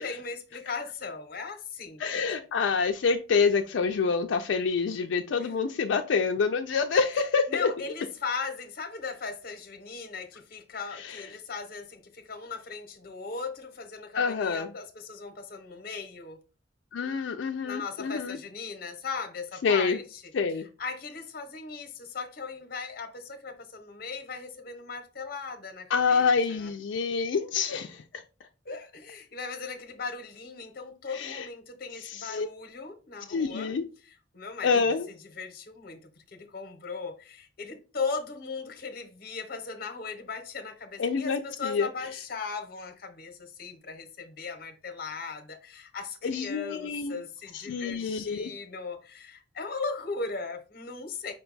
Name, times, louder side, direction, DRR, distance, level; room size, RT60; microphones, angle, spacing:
voice 1, 0.0-2.0 5.4-5.5 7.5-16.4 17.6-20.3 20.8-26.2 26.5-26.7 28.6-33.8 34.3-51.3, left 4 dB, 55° left, 0.8 m, -38 dB
voice 2, 2.0-7.7 11.0-11.2 14.1-14.7 16.9-18.4 19.6-20.0 20.3-20.6 25.9-28.2 31.1-31.5 32.0-32.5 33.3-33.8 34.6-35.1 41.0-41.9 46.2-47.2 47.5-48.5, left 5 dB, 80° left, 0.4 m, -27 dB
5.0 x 2.2 x 3.8 m
head